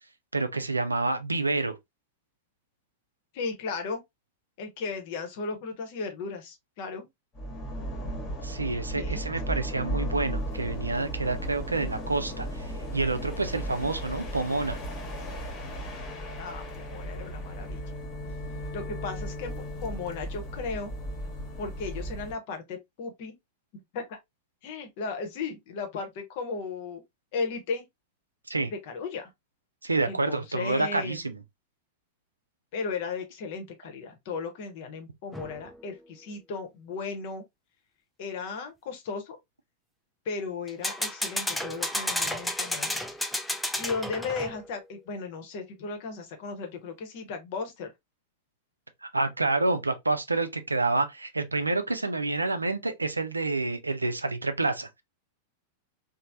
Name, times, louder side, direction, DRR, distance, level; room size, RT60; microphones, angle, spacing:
voice 1, 0.3-1.7 8.4-14.8 28.5-28.7 29.8-31.4 49.0-55.0, right 3 dB, 85° right, 0.4 m, -28 dB
voice 2, 3.3-4.0 4.6-7.1 9.0-9.5 16.4-17.8 18.7-19.5 19.8-20.9 21.6-23.3 23.7-24.2 24.6-27.0 27.3-27.8 28.9-29.3 30.1-31.2 32.7-37.4 38.2-39.4 40.3-42.9 43.8-47.9, left 4 dB, 50° left, 0.8 m, -35 dB
sound 1, 7.3-22.4, equal, 30° left, 1.0 m, -35 dB
sound 2, 35.3-35.8 40.7-44.7, left 1 dB, 5° left, 0.4 m, -32 dB
3.1 x 2.0 x 2.5 m
figure-of-eight pair, 95°, 0 cm